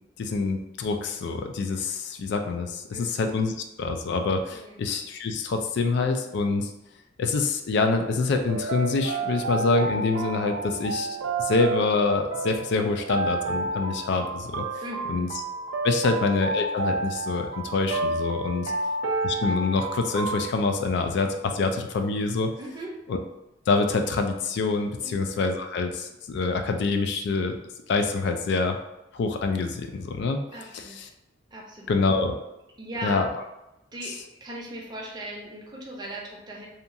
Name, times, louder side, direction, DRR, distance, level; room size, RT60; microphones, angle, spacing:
voice 1, 0.2-6.7 7.2-14.6 15.1-15.3 15.8-18.7 19.2-22.5 23.1-23.2 23.7-27.6 27.9-28.8 29.1-30.4 30.7-31.1 31.9-32.3 33.0-33.3 34.1-34.2, left 3 dB, 65° left, 5 dB, 0.3 m, -26 dB
sound 1, 8.5-20.5, right 3 dB, 85° right, 0.4 m, -30 dB
voice 2, 14.8-15.2 18.6-18.7 22.6-22.9 25.0-25.1 30.5-31.0 31.5-32.0 32.8-33.2 33.9-34.2 34.4-36.7, right 1 dB, 25° right, -2 dB, 0.6 m, -38 dB
2.8 x 2.3 x 2.6 m, 0.91 s
head